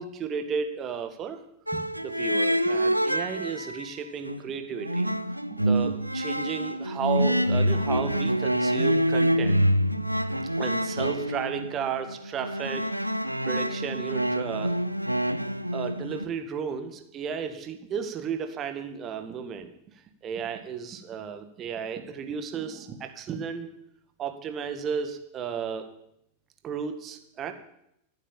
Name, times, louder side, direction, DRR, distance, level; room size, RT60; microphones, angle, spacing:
voice 1, 0.0-1.4 1.7-5.1 5.5-9.6 10.6-12.9 13.4-14.8 15.7-19.7 20.2-23.7 24.2-25.9 26.6-27.5, right 7 dB, 30° right, 7 dB, 1.8 m, -33 dB
sound 1, 1.7-3.9 4.3-16.3, equal, 90° right, 0.6 m, -26 dB
14.0 x 9.2 x 7.2 m, 0.79 s
figure-of-eight pair, 90°, 0 cm